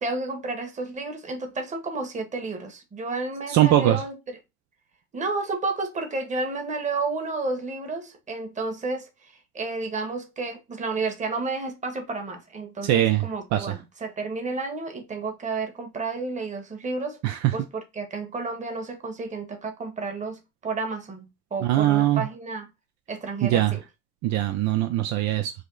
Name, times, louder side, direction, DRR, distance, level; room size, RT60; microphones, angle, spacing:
voice 1, 0.0-4.2 5.1-17.2 17.5-22.6 23.1-23.8, right 3 dB, 25° right, 1.2 m, -31 dB
voice 2, 3.5-4.0 12.8-13.7 17.2-17.5 21.6-22.3 23.4-23.8 24.2-25.5, right 13 dB, 60° right, 0.6 m, -22 dB
5.1 x 2.1 x 3.8 m
cardioid pair, 130°, 31 cm